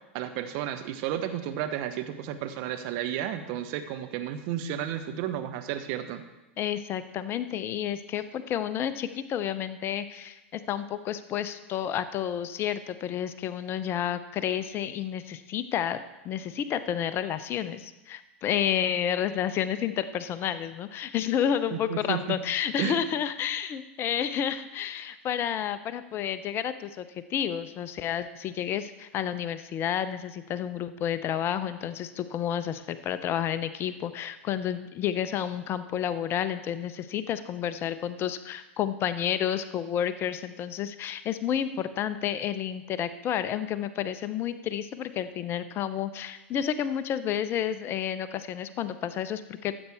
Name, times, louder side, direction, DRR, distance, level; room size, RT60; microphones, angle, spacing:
voice 1, 0.1-6.2 21.7-22.4 22.8-23.1, right 10 dB, 50° right, 8 dB, 0.9 m, -32 dB
voice 2, 6.6-16.0 16.2-49.7, left 9 dB, 35° left, 13 dB, 0.6 m, -30 dB
13.5 x 8.0 x 3.5 m, 1.0 s
hypercardioid pair, 95°, 7 cm